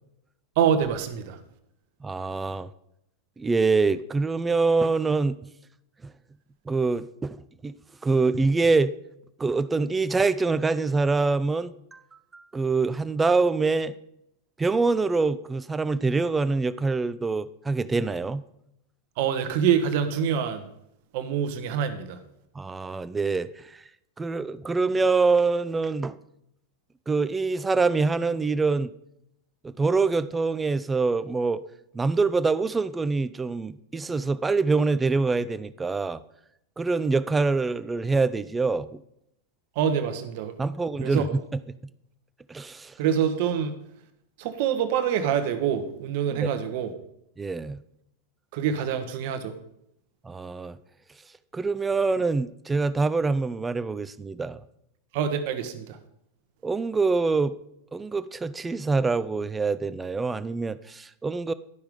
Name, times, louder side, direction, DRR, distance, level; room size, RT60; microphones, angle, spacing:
voice 1, 0.6-1.4 19.2-20.6 21.1-22.2 39.8-40.5 41.0-41.2 43.0-43.7 44.4-46.9 48.5-49.5 55.1-56.0, right 8 dB, 50° right, 1.0 m, -25 dB
voice 2, 2.0-2.7 3.4-5.4 6.0-6.1 6.7-7.4 7.6-7.7 8.0-8.9 9.4-12.0 12.3-13.9 14.6-18.4 22.6-23.5 24.2-26.2 27.1-28.9 29.6-31.6 31.9-36.2 36.8-38.9 40.6-41.6 42.5-42.9 46.3-46.5 47.4-47.8 50.2-50.8 51.5-54.6 56.6-57.5 57.9-61.5, right 4 dB, 15° right, 0.4 m, -25 dB
11.0 x 5.8 x 5.1 m
figure-of-eight pair, 90°, 0 cm